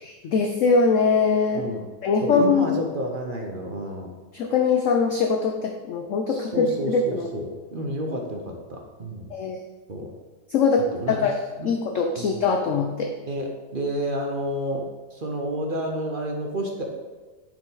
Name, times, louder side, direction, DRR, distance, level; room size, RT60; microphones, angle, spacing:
voice 1, 0.0-1.7 2.0-2.8 4.3-7.3 9.3-9.6 10.5-11.3 11.6-13.2, left 4 dB, 70° left, 4 dB, 0.7 m, -22 dB
voice 2, 1.5-1.8 2.2-4.1 6.3-9.3 9.9-10.1 10.9-11.3 11.6-11.7 12.2-12.4 13.2-14.9 15.1-16.8, equal, 40° right, 1 dB, 0.7 m, -30 dB
9.9 x 4.9 x 3.9 m, 1.3 s
omnidirectional pair, 1.9 m